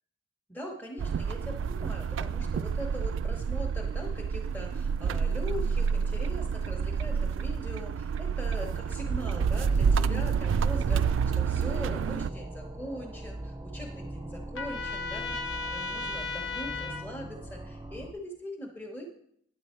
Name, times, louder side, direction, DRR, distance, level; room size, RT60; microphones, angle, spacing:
voice 1, 0.5-19.0, equal, 10° left, 0 dB, 0.9 m, -41 dB
sound 1, 1.0-12.3, right 6 dB, 80° right, 0.3 m, -28 dB
sound 2, 9.5-18.1, right 1 dB, 20° right, 0.6 m, -41 dB
Trumpet, 14.5-17.1, left 4 dB, 80° left, 1.0 m, -35 dB
9.2 x 7.7 x 4.3 m, 0.70 s
head